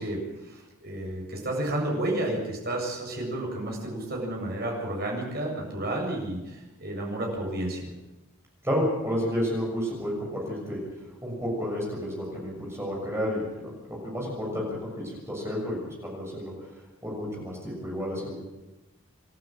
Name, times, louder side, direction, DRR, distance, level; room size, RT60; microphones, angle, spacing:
voice 1, 0.0-7.9, right 1 dB, 45° right, -1 dB, 7.6 m, -31 dB
voice 2, 8.6-11.0 11.2-16.6 17.0-18.4, equal, 10° right, -2 dB, 6.8 m, -31 dB
28.5 x 12.0 x 9.0 m, 1.0 s
head